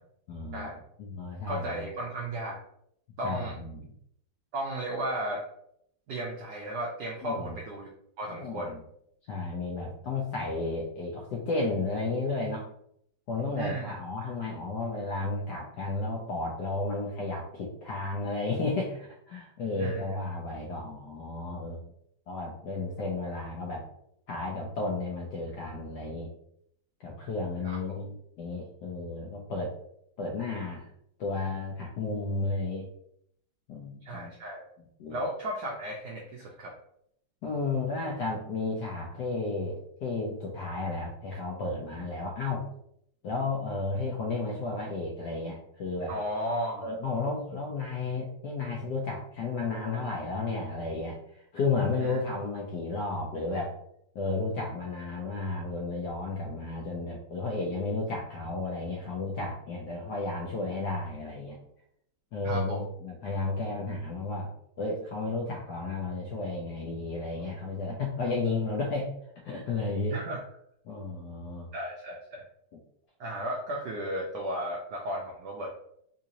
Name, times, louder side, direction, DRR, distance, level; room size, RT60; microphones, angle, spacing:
voice 1, 0.3-0.7 1.0-1.8 3.2-3.9 7.2-7.5 8.3-8.8 9.3-12.7 13.3-21.8 22.3-23.9 24.3-26.3 27.0-29.7 30.2-30.9 31.2-32.9 33.7-34.3 35.0-35.2 37.4-42.6 43.2-46.1 46.8-53.8 54.1-61.6 62.3-64.5 64.8-69.1 69.4-70.2 70.8-71.7, left 3 dB, 75° left, -1 dB, 0.9 m, -33 dB
voice 2, 1.5-2.6 3.2-3.6 4.5-5.4 6.1-7.9 8.2-8.7 13.6-13.9 14.2-14.3 19.8-20.2 27.6-27.8 34.0-34.6 35.1-36.7 46.1-46.9 52.0-52.2 62.4-62.9 70.1-70.4 71.7-72.4 73.2-75.7, right 1 dB, 80° right, -2 dB, 0.9 m, -34 dB
3.8 x 2.5 x 2.8 m, 0.72 s
omnidirectional pair, 2.4 m